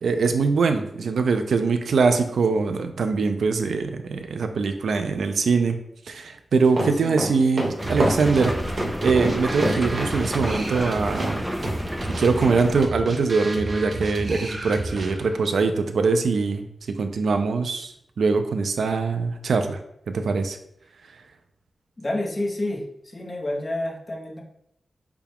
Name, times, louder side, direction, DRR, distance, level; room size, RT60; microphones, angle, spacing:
voice 1, 0.0-5.8 6.1-11.4 12.2-16.6 17.0-17.9 18.2-19.8 20.1-20.6, right 4 dB, 80° right, 7 dB, 0.4 m, -22 dB
sound 1, 6.7-10.9 11.2-11.3 11.6-11.8, right 1 dB, 60° right, 1.2 m, -26 dB
voice 2, 6.9-7.4 22.0-24.4, left 1 dB, 25° left, -1 dB, 0.9 m, -29 dB
sound 2, 7.8-12.9, equal, 5° right, 0.4 m, -31 dB
sound 3, 7.8-15.4, right 1 dB, 40° right, 0.8 m, -33 dB
6.8 x 2.3 x 3.5 m, 0.75 s
wide cardioid pair, 175°, 0 cm